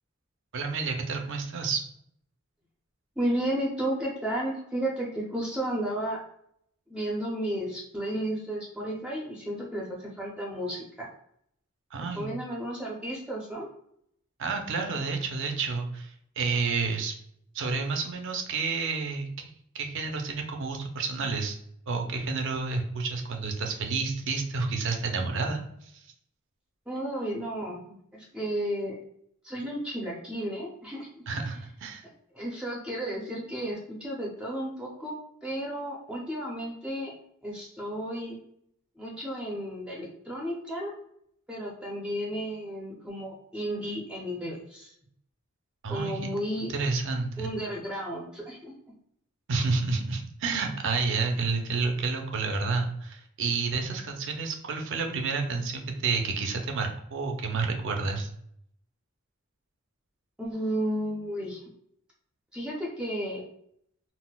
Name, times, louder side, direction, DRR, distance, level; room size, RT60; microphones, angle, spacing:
voice 1, 0.5-1.8 11.9-12.3 14.4-17.1 17.5-21.6 21.9-26.0 31.3-32.0 45.8-46.2 46.6-47.5 49.5-58.3, right 4 dB, 65° right, 4 dB, 0.5 m, -30 dB
voice 2, 3.2-6.2 6.9-11.1 12.2-13.7 26.9-29.0 29.4-31.2 32.3-35.2 35.4-37.1 37.4-38.4 39.0-40.9 41.5-44.9 45.9-46.7 47.4-48.7 60.4-61.6 62.5-63.4, right 1 dB, 5° right, -3 dB, 0.5 m, -33 dB
4.0 x 2.0 x 2.2 m, 0.70 s
head